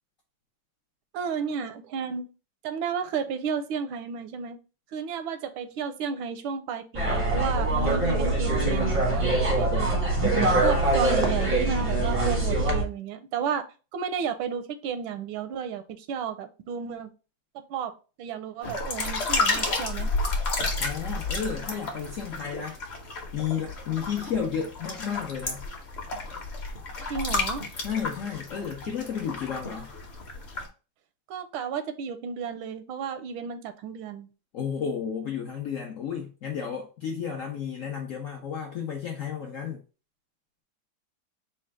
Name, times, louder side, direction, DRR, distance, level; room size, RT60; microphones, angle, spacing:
voice 1, 1.1-2.3 2.6-4.6 4.9-10.0 10.6-13.7 13.9-17.1 17.7-20.1 27.1-27.6 31.3-34.3, right 7 dB, 85° right, 1.4 m, -32 dB
sound 1, 6.9-12.8, right 2 dB, 35° right, 0.5 m, -24 dB
sound 2, 18.6-30.7, left 3 dB, 45° left, 0.9 m, -31 dB
voice 2, 20.8-22.8 23.3-25.6 27.8-29.9 34.5-39.8, left 7 dB, 80° left, 0.7 m, -32 dB
4.2 x 2.3 x 4.6 m
omnidirectional pair, 2.2 m